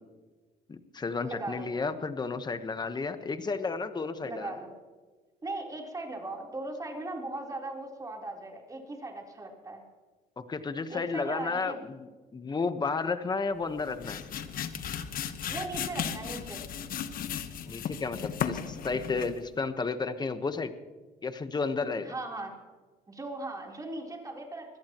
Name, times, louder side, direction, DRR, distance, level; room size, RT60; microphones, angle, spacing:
voice 1, 0.7-4.5 10.4-14.2 17.7-20.7 21.2-22.1, left 4 dB, 25° left, 10 dB, 1.2 m, -32 dB
voice 2, 1.2-1.7 4.2-4.7 5.4-9.8 10.9-11.8 15.5-16.7 22.0-22.5 23.1-24.8, right 2 dB, 20° right, 0 dB, 3.9 m, -38 dB
sound 1, 13.6-19.5, left 8 dB, 55° left, 1.2 m, -36 dB
24.0 x 17.0 x 3.1 m, 1.3 s
cardioid pair, 110°, 17 cm